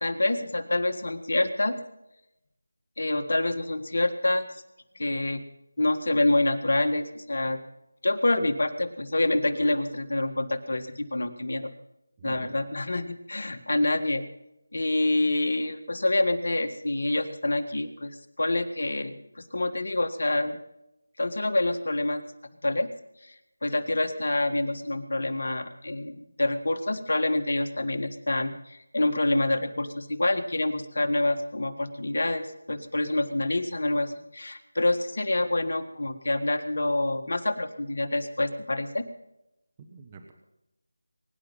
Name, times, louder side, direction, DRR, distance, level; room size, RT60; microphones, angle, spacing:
voice 1, 0.0-1.8 3.0-4.5 5.0-5.4 5.8-7.6 8.0-11.7 12.2-14.2 14.7-18.1 18.4-19.1 19.5-20.6 21.2-22.2 22.6-22.9 23.3-23.4 23.6-39.0, left 2 dB, 60° left, 7 dB, 1.7 m, -27 dB
voice 2, 12.2-12.6 39.8-40.3, right 5 dB, 20° right, 4 dB, 1.3 m, -46 dB
23.0 x 10.5 x 5.6 m, 0.87 s
figure-of-eight pair, 165°, 0 cm